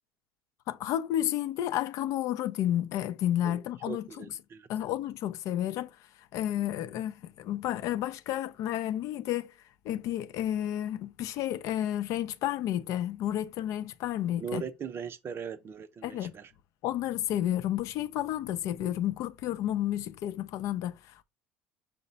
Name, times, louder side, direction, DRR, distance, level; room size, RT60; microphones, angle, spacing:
voice 1, 0.7-4.2 4.7-5.9 6.3-9.5 9.8-14.6 16.0-16.3 16.8-21.2, left 12 dB, 60° left, 0.5 m, -31 dB
voice 2, 3.9-4.7 14.4-16.5, right 7 dB, 40° right, 0.6 m, -39 dB
5.5 x 2.1 x 4.0 m
hypercardioid pair, 75°, 6 cm